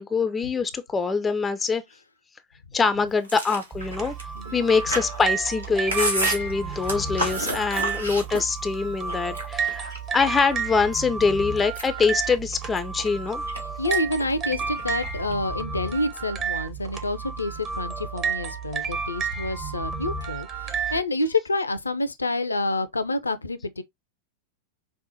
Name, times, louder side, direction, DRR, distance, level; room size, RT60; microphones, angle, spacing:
voice 1, 0.0-1.8 2.7-4.1 4.5-13.4, left 4 dB, 15° left, 0.4 m, -24 dB
Chewing mastication, 3.2-8.7 9.1-10.2 10.6-11.2 11.6-13.6 13.9-14.2 14.5-15.3, right 1 dB, 80° right, 1.2 m, -31 dB
sound 1, 3.7-21.0, right 5 dB, 30° right, 0.8 m, -31 dB
voice 2, 4.3-4.7 6.9-7.2 7.5-7.6 13.8-23.8, left 2 dB, 80° left, 0.4 m, -28 dB
5.4 x 2.1 x 2.8 m
figure-of-eight pair, 90°, 0 cm